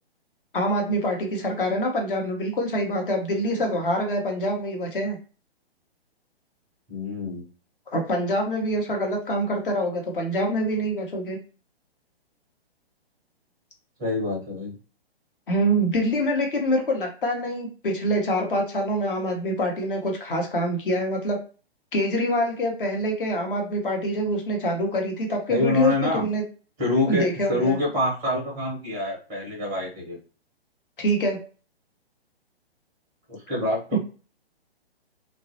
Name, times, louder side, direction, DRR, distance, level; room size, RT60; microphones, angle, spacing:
voice 1, 0.5-5.2 7.9-11.4 15.5-21.4 21.9-26.4 27.1-27.8 31.0-31.4, equal, 55° left, 2 dB, 0.9 m, -25 dB
voice 2, 6.9-7.4 14.0-14.7 25.5-26.3 26.8-30.2 33.3-34.0, left 2 dB, 10° right, -3 dB, 0.5 m, -26 dB
2.3 x 2.1 x 2.7 m, 0.36 s
figure-of-eight pair, 125°, 32 cm